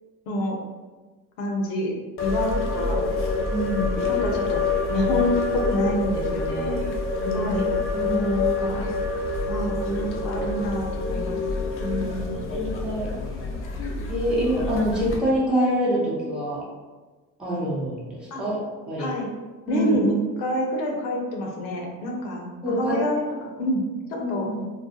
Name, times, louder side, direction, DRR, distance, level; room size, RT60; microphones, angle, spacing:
voice 1, 0.3-0.6 1.4-1.9 2.2-3.1 4.1-4.6 4.9-6.8 7.3-7.7 8.0-9.1 9.5-11.4 11.8-12.4 18.3-18.4 19.0-19.3 19.7-23.2 23.6-23.8 24.3-24.5, equal, 75° left, 1 dB, 0.7 m, -27 dB
sound 1, 2.2-15.2, left 3 dB, 30° left, 0.4 m, -27 dB
voice 2, 3.5-3.9 7.1-7.5 7.9-8.3 12.5-13.1 14.1-16.6 17.4-19.1 19.7-20.0 22.1-22.2 22.6-23.0 24.2-24.6, equal, ahead, -7 dB, 0.7 m, -26 dB
2.3 x 2.1 x 2.8 m, 1.3 s
hypercardioid pair, 75°, 44 cm